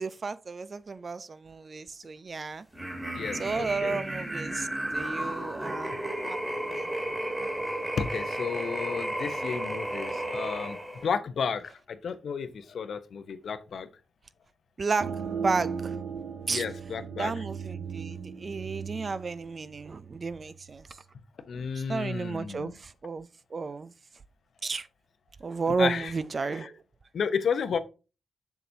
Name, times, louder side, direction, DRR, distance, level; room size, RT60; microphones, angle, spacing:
voice 1, 0.0-2.6 3.4-6.9 14.8-16.0 16.5-16.6 17.2-20.9 21.5-23.9 24.6-24.9 25.4-26.8, right 4 dB, 45° right, 0.5 m, -33 dB
sound 1, 2.7-11.1, right 1 dB, 15° right, 2.2 m, -33 dB
voice 2, 3.1-4.0 8.0-13.9 16.5-17.3 21.5-22.7 25.8-26.1 26.6-26.7 27.1-27.8, left 6 dB, 75° left, 0.9 m, -32 dB
sound 2, 15.0-20.4, right 6 dB, 70° right, 0.9 m, -37 dB
7.0 x 6.1 x 2.8 m
cardioid pair, 80°, 0 cm